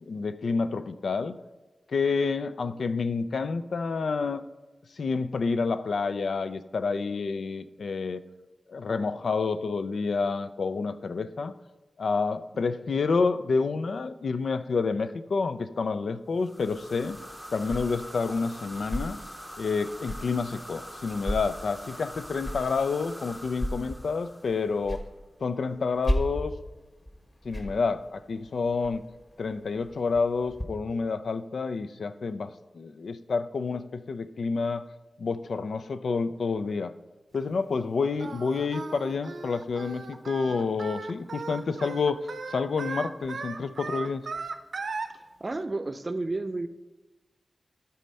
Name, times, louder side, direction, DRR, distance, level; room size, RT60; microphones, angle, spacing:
voice 1, 0.0-1.4 1.9-4.4 5.0-8.2 8.7-11.5 12.0-17.2 17.5-19.2 19.6-25.0 25.4-26.5 27.4-29.0 29.4-34.8 35.2-36.9 37.3-42.2 42.5-44.2, left 4 dB, 80° left, 12 dB, 0.4 m, -29 dB
sound 1, 16.4-24.9, equal, 5° left, 0.7 m, -44 dB
sound 2, 16.6-30.6, equal, 25° left, 1.4 m, -37 dB
Singing, 38.2-45.1, right 4 dB, 75° right, 0.6 m, -37 dB
voice 2, 45.1-46.7, right 2 dB, 35° right, 10 dB, 0.6 m, -32 dB
12.5 x 4.2 x 5.5 m, 1.2 s
wide cardioid pair, 115°, 0 cm